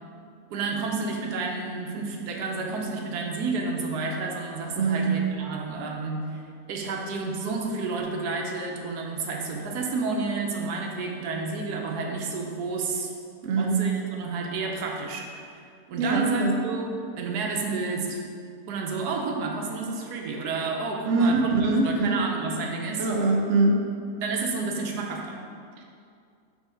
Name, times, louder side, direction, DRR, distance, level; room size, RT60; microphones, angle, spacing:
voice 1, 0.5-6.4 6.7-13.1 13.6-15.6 15.9-16.9 17.2-18.2 18.7-23.1 24.2-25.4, right 4 dB, 80° right, 1 dB, 1.2 m, -30 dB
voice 2, 4.8-5.1 13.4-13.8 16.0-16.5 21.0-22.2 23.0-23.8, right 3 dB, 60° right, 0 dB, 0.9 m, -23 dB
5.3 x 3.7 x 4.9 m, 2.3 s
omnidirectional pair, 1.7 m